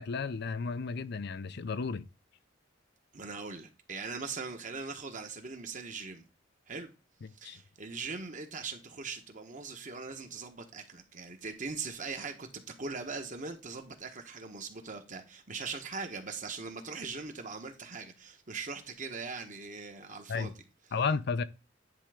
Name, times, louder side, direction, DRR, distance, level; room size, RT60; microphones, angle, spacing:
voice 1, 0.0-2.1 7.4-7.6 20.3-20.5 20.9-21.4, left 5 dB, 60° left, 0.5 m, -33 dB
voice 2, 3.1-6.2 6.7-6.9 7.4-20.5, right 4 dB, 45° right, 1.4 m, -41 dB
10.0 x 3.5 x 5.0 m
head